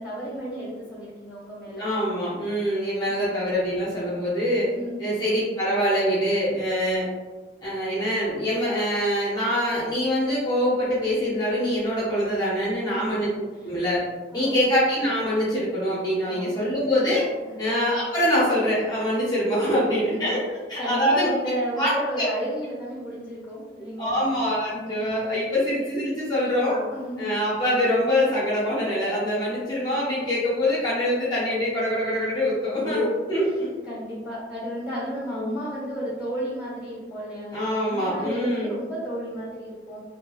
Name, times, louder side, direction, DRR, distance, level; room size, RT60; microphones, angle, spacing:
voice 1, 0.0-1.8 4.7-5.0 13.5-13.7 14.3-14.6 16.2-16.7 17.5-17.6 19.7-20.3 20.8-24.3 24.7-25.0 26.6-27.2 32.7-33.1 33.4-33.6 33.8-40.0, equal, 5° right, -10 dB, 1.3 m, -33 dB
voice 2, 1.8-4.7 5.0-7.1 7.6-13.3 13.6-14.0 14.3-17.3 17.6-20.4 20.7-21.3 21.8-21.9 22.2-22.3 24.0-26.8 27.2-33.7 35.3-35.6 37.5-38.8, equal, 20° left, -7 dB, 0.6 m, -24 dB
2.6 x 2.6 x 2.3 m, 1.3 s
head